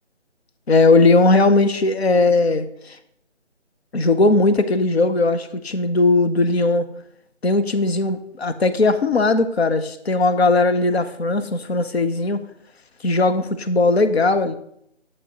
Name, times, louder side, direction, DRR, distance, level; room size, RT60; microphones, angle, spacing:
voice 1, 0.7-3.0 3.9-6.9 7.4-12.4 13.0-14.6, left 3 dB, 60° left, 10 dB, 0.8 m, -18 dB
8.1 x 7.7 x 3.0 m, 0.71 s
figure-of-eight pair, 165°, 35 cm